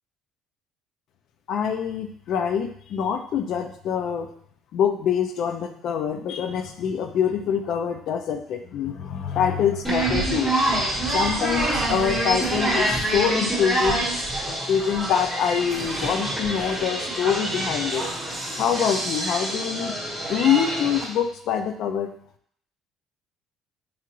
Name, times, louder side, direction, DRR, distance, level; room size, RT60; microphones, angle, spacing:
voice 1, 1.5-4.3 4.7-10.8 11.1-14.1 14.5-18.1 18.6-20.0 20.2-22.1, left 8 dB, 55° left, 7 dB, 0.4 m, -25 dB
sound 1, 9.8-21.0, right 1 dB, ahead, 1.2 m, -26 dB
4.8 x 2.4 x 3.0 m, 0.65 s
cardioid pair, 150°, 0 cm